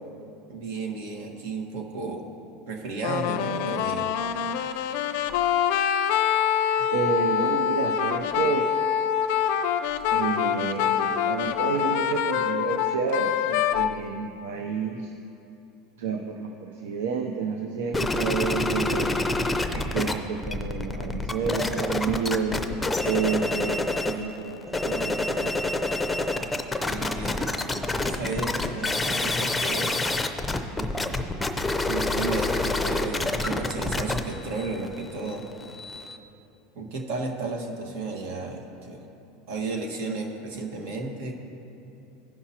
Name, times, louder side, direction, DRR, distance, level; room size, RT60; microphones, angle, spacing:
voice 1, 0.5-2.3 2.7-4.1 6.7-6.9 26.7-27.5 28.0-30.0 30.8-31.3 31.8-35.5 36.7-39.0 39.5-41.3, right 3 dB, 70° right, 2 dB, 1.5 m, -33 dB
sound 1, 3.0-14.0, left 9 dB, 70° left, 0.4 m, -25 dB
voice 2, 6.9-8.7 10.1-15.1 16.0-19.1 19.7-25.6, right 6 dB, 90° right, 3 dB, 0.6 m, -30 dB
sound 2, 17.9-20.1 20.4-24.2 24.6-36.2, left 2 dB, 10° left, 0.6 m, -27 dB
16.0 x 5.9 x 2.9 m, 2.9 s
supercardioid pair, 125°, 0 cm